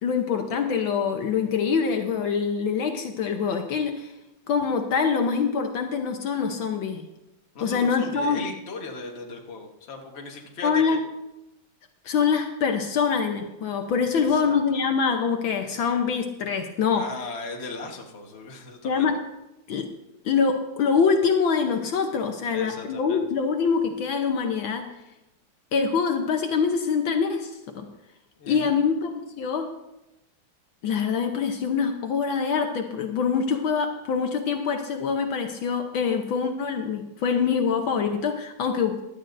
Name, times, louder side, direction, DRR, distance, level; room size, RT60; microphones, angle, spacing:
voice 1, 0.0-4.1 4.5-7.1 7.6-8.4 10.6-11.0 12.0-17.0 18.8-19.1 19.7-19.9 20.2-24.8 25.7-27.8 28.5-29.7 30.8-38.9, left 6 dB, 70° left, 4 dB, 1.6 m, -24 dB
voice 2, 7.5-11.0 14.1-14.6 16.9-19.1 22.5-23.2 28.4-28.8, left 3 dB, 35° left, 1 dB, 1.3 m, -38 dB
16.5 x 11.5 x 2.6 m, 0.92 s
omnidirectional pair, 2.4 m